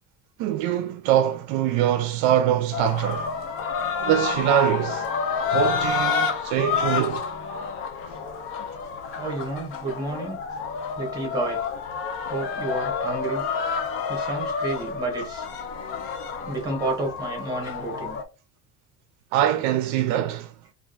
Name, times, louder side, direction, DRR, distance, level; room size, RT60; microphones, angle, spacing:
voice 1, 0.4-3.3 4.0-5.1 5.5-7.2 19.3-20.5, right 11 dB, 75° right, 0.5 m, -23 dB
sound 1, 2.7-18.2, left 6 dB, 45° left, 0.6 m, -29 dB
voice 2, 9.2-10.4 11.0-11.6 12.3-13.4 14.1-15.5 16.4-18.2, right 2 dB, 15° right, 1.3 m, -30 dB
3.4 x 2.4 x 2.4 m
cardioid pair, 150°, 29 cm